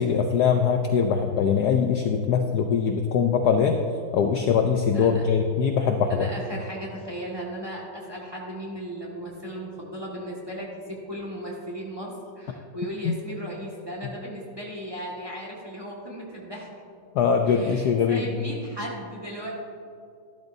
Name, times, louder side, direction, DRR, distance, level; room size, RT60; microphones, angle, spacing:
voice 1, 0.0-3.8 4.1-6.3 13.0-13.1 17.1-18.2, left 6 dB, 70° left, 5 dB, 1.0 m, -22 dB
voice 2, 4.9-5.2 6.1-16.7 17.5-19.5, equal, 15° right, -3 dB, 1.5 m, -36 dB
13.0 x 12.0 x 2.6 m, 2.4 s
omnidirectional pair, 2.2 m